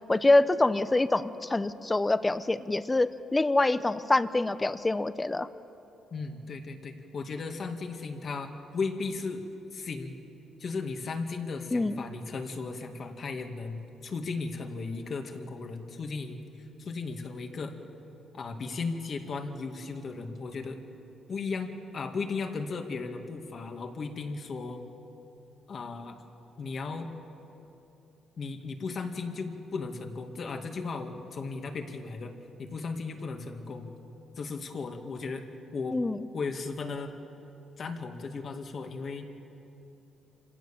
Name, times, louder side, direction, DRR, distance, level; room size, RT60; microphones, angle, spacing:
voice 1, 0.1-5.5 11.7-11.9 35.9-36.2, left 2 dB, 20° left, 13 dB, 0.8 m, -25 dB
voice 2, 6.1-9.4 9.7-10.1 10.6-16.4 16.8-17.7 18.3-20.8 21.3-24.8 25.7-26.2 26.6-27.1 28.4-32.3 32.6-33.9 34.4-35.4 35.7-36.0 36.3-37.1 37.8-39.3, left 4 dB, 50° left, 4 dB, 2.1 m, -36 dB
26.5 x 17.0 x 7.3 m, 3.0 s
cardioid pair, 90°, 0 cm